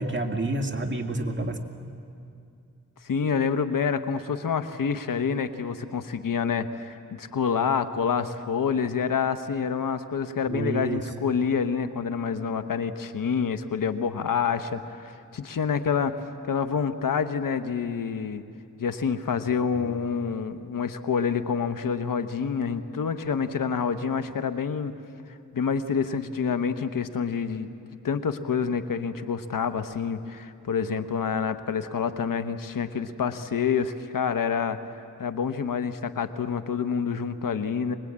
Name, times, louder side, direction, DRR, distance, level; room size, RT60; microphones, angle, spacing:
voice 1, 0.0-1.6 10.5-11.0 19.7-20.0, right 2 dB, 35° right, 4 dB, 2.2 m, -29 dB
voice 2, 3.0-16.1 16.5-18.4 18.8-24.9 25.5-27.7 28.0-34.8 35.2-37.9, left 6 dB, 85° left, 10 dB, 1.1 m, -27 dB
24.5 x 20.5 x 8.8 m, 2.5 s
cardioid pair, 65°, 32 cm